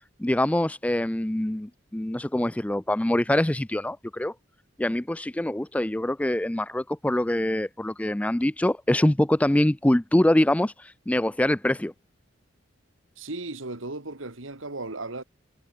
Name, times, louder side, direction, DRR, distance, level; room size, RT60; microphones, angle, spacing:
voice 1, 0.2-4.3 4.8-11.9, left 1 dB, 5° left, 0.4 m, -24 dB
voice 2, 13.2-15.2, right 2 dB, 85° right, 2.5 m, -35 dB
head